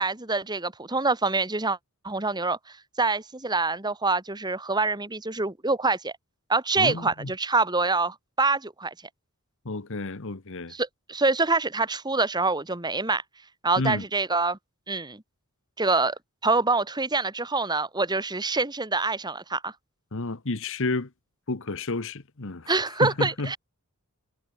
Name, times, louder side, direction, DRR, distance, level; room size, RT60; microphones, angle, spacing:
voice 1, 0.0-1.8 2.0-2.6 3.0-6.1 6.5-8.9 10.7-13.2 13.6-14.6 14.9-15.2 15.8-16.2 16.4-19.7 22.7-23.6, right 3 dB, 20° right, 2.0 m, -25 dB
voice 2, 6.8-7.3 9.6-10.7 13.8-14.0 20.1-21.1 21.5-22.7 23.0-23.5, left 3 dB, 60° left, 1.3 m, -30 dB
head